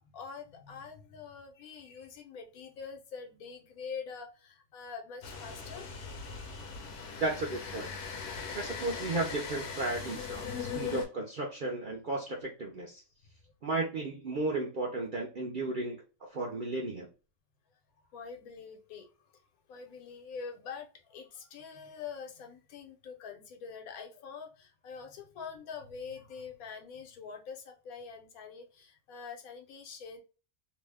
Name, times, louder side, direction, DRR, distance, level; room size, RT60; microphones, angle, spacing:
voice 1, 0.1-5.9 18.1-19.1 19.7-30.2, left 6 dB, 75° left, 3 dB, 1.2 m, -45 dB
sound 1, 5.2-11.1, left 6 dB, 60° left, 0.9 m, -40 dB
voice 2, 7.2-7.9 8.5-13.0 13.6-16.0 16.3-17.1, right 2 dB, 60° right, -2 dB, 0.5 m, -34 dB
2.7 x 2.1 x 3.3 m, 0.33 s
omnidirectional pair, 1.5 m